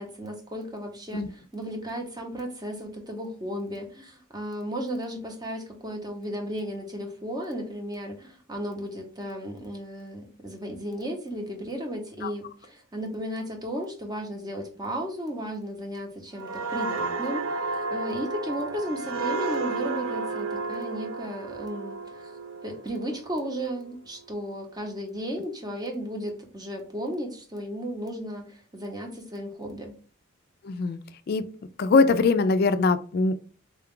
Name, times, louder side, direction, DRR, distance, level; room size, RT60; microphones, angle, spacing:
voice 1, 0.0-22.3 22.6-29.9, equal, 20° right, 2 dB, 0.8 m, -34 dB
sound 1, 16.4-23.8 24.2-24.5, right 3 dB, 75° right, 0.5 m, -32 dB
voice 2, 30.6-31.0 31.3-31.5 31.8-33.4, left 4 dB, 45° left, 11 dB, 0.3 m, -22 dB
3.8 x 2.3 x 3.6 m, 0.38 s
head